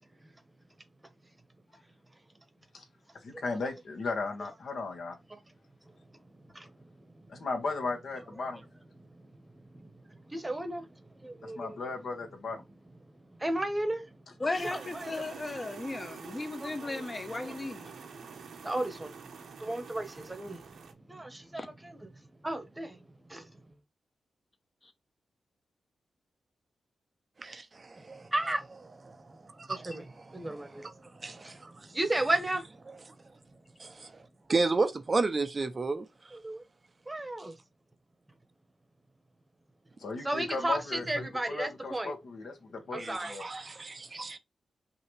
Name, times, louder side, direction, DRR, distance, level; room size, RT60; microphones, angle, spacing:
voice 1, 3.2-5.2 7.3-8.6 11.4-12.6 40.0-43.5, left 3 dB, 70° left, 1.7 m, -36 dB
voice 2, 9.7-11.8 13.4-14.0 14.6-15.1 16.6-17.0 17.3-17.5 18.6-19.1 19.6-20.6 21.1-21.7 22.4-23.0 23.3-23.5 28.3-28.6 29.7-30.0 30.3-30.9 31.4-32.7 36.3-36.6 37.1-37.5 40.2-42.1 42.9-43.4, right 1 dB, 15° right, 1.0 m, -34 dB
voice 3, 14.4-17.9 21.5-21.7 24.8-24.9, left 2 dB, 30° left, 0.9 m, -36 dB
sound 1, 14.5-20.9, right 6 dB, 80° right, 1.0 m, -47 dB
voice 4, 27.4-28.3 29.1-29.2 29.6-31.9 33.8-36.1 43.0-44.4, right 3 dB, 35° right, 0.5 m, -33 dB
5.6 x 2.8 x 3.2 m
cardioid pair, 100°, 0 cm